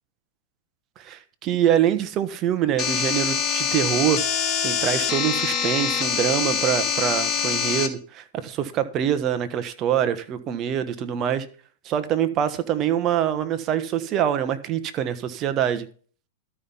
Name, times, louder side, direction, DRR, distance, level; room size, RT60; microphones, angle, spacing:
voice 1, 1.0-4.2 4.6-11.5 11.8-15.9, right 10 dB, 35° right, 1.2 m, -24 dB
sound 1, 2.8-7.9, left 7 dB, 30° left, 1.9 m, -24 dB
12.5 x 5.6 x 7.0 m
hypercardioid pair, 130°, 0 cm